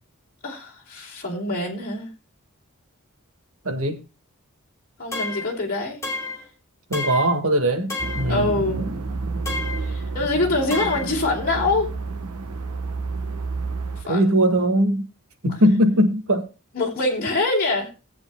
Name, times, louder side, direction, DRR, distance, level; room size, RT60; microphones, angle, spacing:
voice 1, 0.4-2.1 5.0-6.0 8.3-8.9 9.8-11.9 14.1-14.2 16.7-17.9, left 2 dB, 40° left, 3.1 m, -24 dB
voice 2, 3.7-4.0 6.9-8.5 14.1-15.1 15.4-16.5, equal, 70° right, 1.8 m, -20 dB
sound 1, 5.1-5.6 6.0-6.5 6.9-7.4 7.9-8.3 9.5-9.9 10.7-11.1, left 3 dB, 15° left, 2.2 m, -30 dB
sound 2, 8.0-14.0, right 3 dB, 85° right, 1.1 m, -30 dB
18.0 x 8.4 x 2.2 m
head